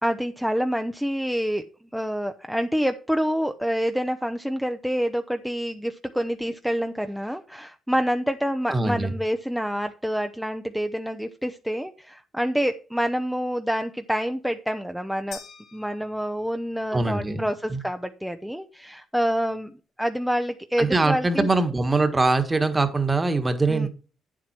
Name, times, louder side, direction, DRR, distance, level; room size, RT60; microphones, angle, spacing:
voice 1, 0.0-1.6 1.9-15.4 15.7-21.5 23.7-23.9, equal, ahead, 7 dB, 0.7 m, -27 dB
voice 2, 8.7-9.1 16.9-17.8 20.8-23.9, right 3 dB, 20° right, 9 dB, 1.5 m, -23 dB
sound 1, 15.3-16.8, left 7 dB, 80° left, 2.2 m, -45 dB
9.1 x 7.6 x 4.4 m, 0.38 s
cardioid pair, 90°, 0 cm